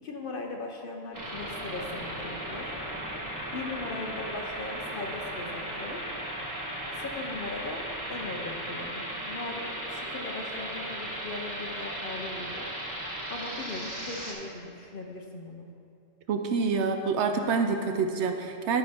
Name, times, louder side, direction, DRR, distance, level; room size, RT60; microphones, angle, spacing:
voice 1, 0.0-2.7 3.5-6.0 7.0-7.8 8.1-12.7 13.3-15.7, left 2 dB, 55° left, 1 dB, 0.7 m, -39 dB
sound 1, 1.1-14.3, right 1 dB, 15° right, 1.1 m, -36 dB
voice 2, 16.3-18.8, right 5 dB, 70° right, 6 dB, 0.8 m, -27 dB
12.5 x 5.4 x 3.4 m, 2.6 s
omnidirectional pair, 1.3 m